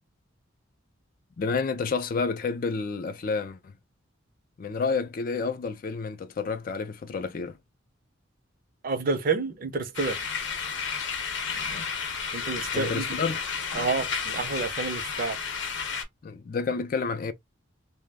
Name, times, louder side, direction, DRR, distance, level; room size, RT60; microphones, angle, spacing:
voice 1, 1.4-3.7 4.6-7.6 12.7-13.5 16.2-17.3, left 4 dB, 45° left, 0.3 m, -29 dB
voice 2, 8.8-10.2 12.3-13.2 13.7-15.4, right 4 dB, 45° right, 0.5 m, -29 dB
sound 1, 9.9-16.0, left 6 dB, 70° left, 0.7 m, -32 dB
2.2 x 2.0 x 3.3 m
head